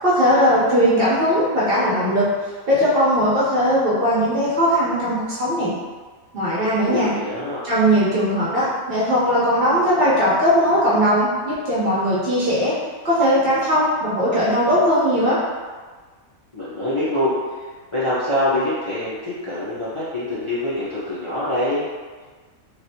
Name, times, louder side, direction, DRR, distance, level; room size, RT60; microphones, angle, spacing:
voice 1, 0.0-2.3 2.7-5.7 6.3-7.1 7.6-12.7 13.0-15.4, equal, 50° right, -9 dB, 1.0 m, -19 dB
voice 2, 6.9-7.6 16.5-17.6 17.9-21.9, left 1 dB, 30° left, -12 dB, 0.7 m, -24 dB
3.2 x 2.5 x 2.8 m, 1.4 s
omnidirectional pair, 1.4 m